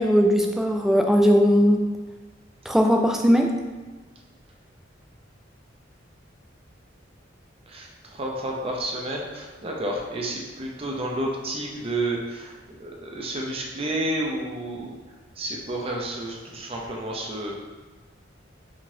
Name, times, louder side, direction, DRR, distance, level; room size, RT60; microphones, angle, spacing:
voice 1, 0.0-1.9 2.7-3.5, equal, ahead, 2 dB, 0.3 m, -19 dB
voice 2, 7.7-15.0 15.4-17.5, right 1 dB, 30° right, -1 dB, 0.7 m, -30 dB
4.8 x 3.8 x 2.7 m, 1.3 s
head